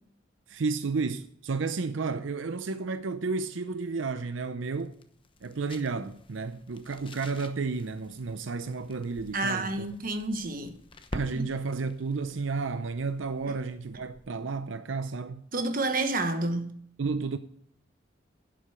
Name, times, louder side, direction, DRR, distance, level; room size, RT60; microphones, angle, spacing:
voice 1, 0.5-4.9 5.4-9.8 11.1-15.4 17.0-17.4, right 4 dB, 85° right, 0.6 m, -32 dB
sound 1, 3.7-14.4, left 1 dB, 25° left, 0.9 m, -48 dB
voice 2, 9.3-10.8 11.3-11.5 15.5-16.7, right 2 dB, 45° right, 1.2 m, -29 dB
11.0 x 7.8 x 4.9 m
head